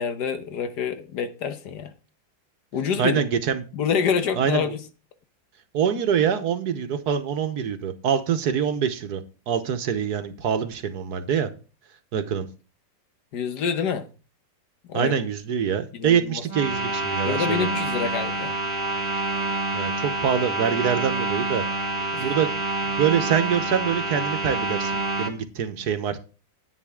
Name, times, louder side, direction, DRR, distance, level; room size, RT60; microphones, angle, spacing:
voice 1, 0.0-1.9 2.7-3.2 3.7-4.8 13.3-14.1 14.9-15.1 15.9-16.4 17.2-18.5 22.1-22.2, left 6 dB, 75° left, 1.6 m, -27 dB
voice 2, 3.0-3.7 4.4-4.7 5.7-11.5 12.1-12.5 14.9-17.8 19.7-21.6 22.2-22.5 22.8-26.2, right 8 dB, 70° right, 1.5 m, -25 dB
sound 1, 16.5-25.3, right 2 dB, 20° right, 1.6 m, -27 dB
10.0 x 8.9 x 3.6 m
omnidirectional pair, 1.8 m